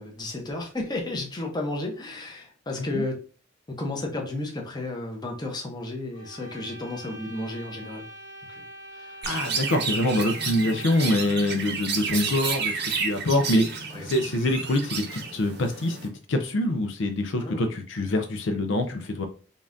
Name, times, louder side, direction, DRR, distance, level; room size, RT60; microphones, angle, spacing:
voice 1, 0.0-3.2 3.7-8.0 8.5-8.6 8.9-9.2 13.9-14.0 17.4-17.7, left 2 dB, 20° left, 1 dB, 0.8 m, -33 dB
sound 1, 6.1-11.4, right 1 dB, 90° right, 0.9 m, -44 dB
voice 2, 9.2-19.3, left 1 dB, 70° left, 6 dB, 0.5 m, -25 dB
Chirp tweet, 9.2-16.1, right 5 dB, 60° right, 0.8 m, -31 dB
5.3 x 2.4 x 2.6 m, 0.38 s
head